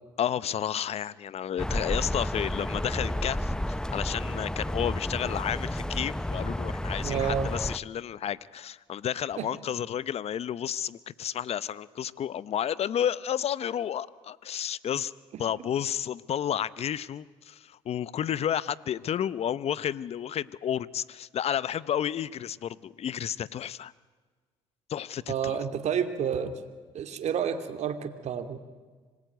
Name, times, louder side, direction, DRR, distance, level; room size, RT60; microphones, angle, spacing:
voice 1, 0.2-15.1 15.4-23.9 24.9-25.6, left 9 dB, 55° left, 19 dB, 0.9 m, -31 dB
sound 1, 1.6-7.8, left 1 dB, 5° left, 0.8 m, -31 dB
voice 2, 7.0-7.5 9.4-9.5 25.3-26.5 26.9-28.6, right 8 dB, 60° right, 8 dB, 2.5 m, -29 dB
26.0 x 20.0 x 9.4 m, 1.4 s
supercardioid pair, 65°, 13 cm